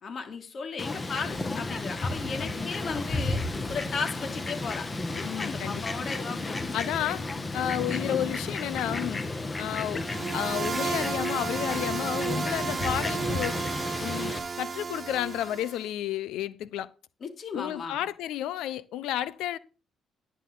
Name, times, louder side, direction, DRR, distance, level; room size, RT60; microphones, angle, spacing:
voice 1, 0.0-3.4 3.7-7.2 17.2-18.1, left 5 dB, 50° left, 3.3 m, -36 dB
Fowl, 0.8-14.4, left 2 dB, 25° left, 2.2 m, -33 dB
voice 2, 5.2-5.8 6.7-7.2 7.5-9.2 9.6-10.0 10.3-13.6 14.0-16.9 17.5-19.6, left 12 dB, 90° left, 1.0 m, -31 dB
sound 1, 10.0-15.8, right 5 dB, 40° right, 0.8 m, -33 dB
11.0 x 9.8 x 4.1 m
cardioid pair, 90°, 0 cm